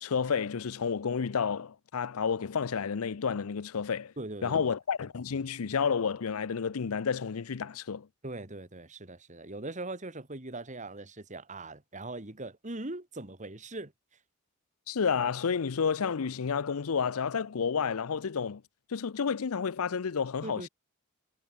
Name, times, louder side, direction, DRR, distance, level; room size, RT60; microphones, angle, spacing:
voice 1, 0.0-4.1 4.4-8.1 14.9-18.6 18.9-20.7, left 6 dB, 80° left, 0.6 m, -30 dB
voice 2, 4.2-4.6 8.2-13.9 20.4-20.7, right 2 dB, 35° right, 2.3 m, -40 dB
head